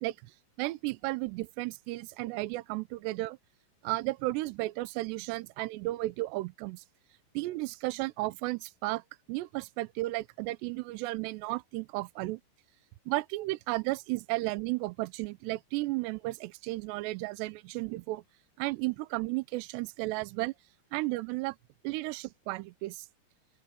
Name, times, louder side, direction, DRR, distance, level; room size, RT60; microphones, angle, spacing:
voice 1, 0.6-3.4 3.8-6.8 7.3-9.0 9.3-12.4 13.1-18.2 18.6-20.5 20.9-21.6 21.8-23.1, right 20 dB, 90° right, 2.4 m, -33 dB
open air
omnidirectional pair, 5.7 m